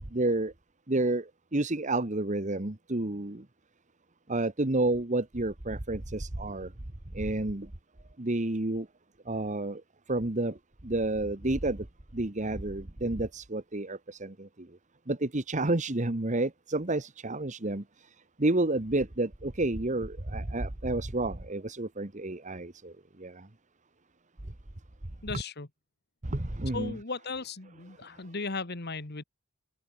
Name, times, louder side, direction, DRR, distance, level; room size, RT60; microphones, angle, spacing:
voice 1, 0.1-0.5 0.9-1.2 1.5-3.4 4.3-6.7 7.2-7.7 8.2-8.8 9.3-9.8 10.1-10.5 10.8-11.8 12.1-14.5 15.1-17.8 18.4-22.9 23.2-23.3 26.3-27.0, right 2 dB, 35° right, 1.5 m, -30 dB
voice 2, 25.2-25.7 26.7-29.2, left 3 dB, 50° left, 1.9 m, -36 dB
head